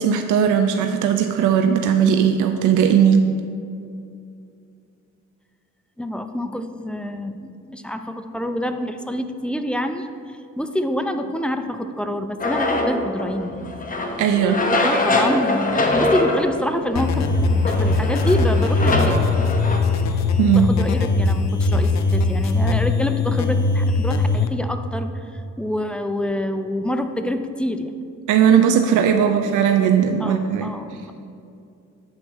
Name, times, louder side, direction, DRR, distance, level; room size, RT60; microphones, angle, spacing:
voice 1, 0.0-3.3 14.2-15.0 20.4-20.7 28.3-31.0, right 8 dB, 85° right, 6 dB, 0.5 m, -18 dB
voice 2, 6.0-10.1 10.6-13.7 14.4-19.3 20.6-27.9 29.2-29.4 30.2-31.1, left 1 dB, 5° left, 7 dB, 0.5 m, -26 dB
sound 1, 12.4-19.8, left 2 dB, 25° left, 1.0 m, -23 dB
sound 2, 16.9-24.5, left 3 dB, 60° left, 0.8 m, -20 dB
8.7 x 4.2 x 6.2 m, 2.5 s
cardioid pair, 90°, 30 cm